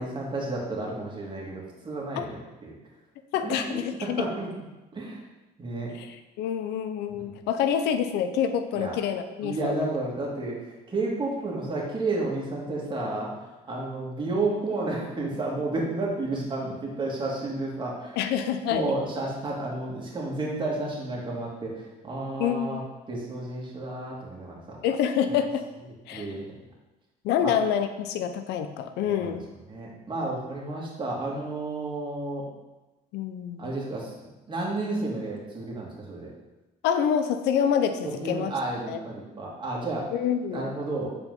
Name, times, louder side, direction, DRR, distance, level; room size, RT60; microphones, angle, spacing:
voice 1, 0.0-2.7 3.4-4.5 4.9-5.2 5.6-5.9 8.8-9.0 9.4-13.3 13.7-18.2 18.7-22.8 23.1-24.8 26.1-26.6 27.4-27.5 29.0-29.4 29.7-32.5 33.6-34.1 34.5-36.3 38.0-40.1 40.5-41.1, right 2 dB, 30° right, -3 dB, 2.0 m, -31 dB
voice 2, 3.3-4.2 5.9-9.9 18.2-18.9 22.4-22.8 24.8-25.6 26.1-26.3 27.2-29.4 33.1-33.7 36.8-38.5 38.9-39.0 40.1-40.7, left 8 dB, 85° left, 9 dB, 0.6 m, -27 dB
7.6 x 4.5 x 3.9 m, 1.1 s
cardioid pair, 110°, 17 cm